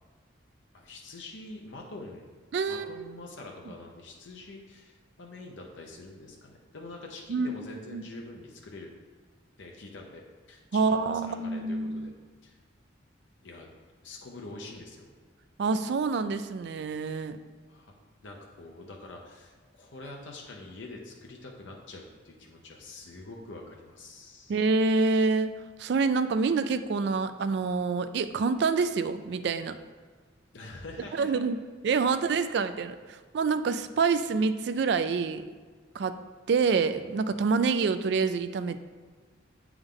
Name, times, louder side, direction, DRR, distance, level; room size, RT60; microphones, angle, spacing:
voice 1, 0.7-2.2 2.7-8.9 9.6-12.1 12.4-12.6 13.4-13.7 14.0-15.1 17.7-17.9 18.2-24.6 30.5-31.5, left 2 dB, 70° left, 0 dB, 0.7 m, -45 dB
voice 2, 2.5-3.0 7.3-7.5 7.9-8.0 10.7-12.1 15.6-17.4 24.5-25.5 25.8-29.8 31.2-31.6 31.8-33.0 33.3-35.4 35.9-36.2 36.5-38.8, right 4 dB, 60° right, 10 dB, 0.3 m, -26 dB
7.9 x 3.5 x 3.6 m, 1.4 s
head